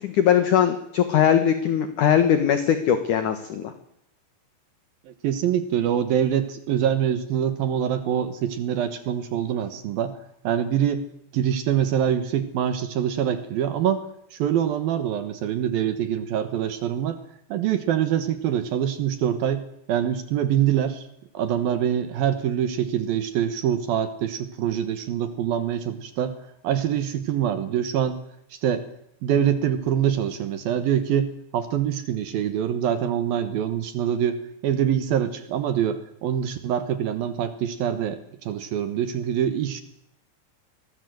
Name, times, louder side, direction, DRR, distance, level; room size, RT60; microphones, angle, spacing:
voice 1, 0.0-3.7, left 9 dB, 60° left, 9 dB, 2.2 m, -20 dB
voice 2, 5.1-10.2 10.4-14.0 14.3-17.2 17.5-19.6 19.9-21.1 21.3-26.4 26.6-28.2 28.5-28.8 29.2-39.8, right 9 dB, 65° right, 11 dB, 2.6 m, -25 dB
23.0 x 19.0 x 7.9 m, 0.75 s
omnidirectional pair, 5.3 m